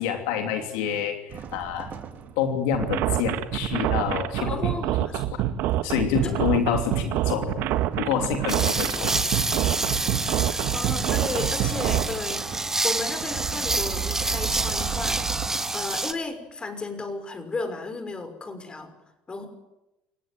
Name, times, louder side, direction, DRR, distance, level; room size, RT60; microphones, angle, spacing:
voice 1, 0.0-1.9 2.4-4.7 5.8-7.6 8.0-9.3, left 8 dB, 85° left, 5 dB, 3.0 m, -27 dB
sound 1, 1.3-2.6 3.8-16.1, right 8 dB, 55° right, 3.2 m, -37 dB
sound 2, 2.7-12.0, right 13 dB, 70° right, 1.6 m, -26 dB
voice 2, 4.4-5.2 6.2-6.3 10.5-12.4 12.8-15.4 15.7-18.9 19.3-19.5, left 3 dB, 25° left, 8 dB, 5.9 m, -34 dB
sound 3, 8.5-16.1, right 2 dB, 10° right, 2.0 m, -28 dB
28.5 x 16.5 x 9.2 m, 0.95 s
supercardioid pair, 90°, 4 cm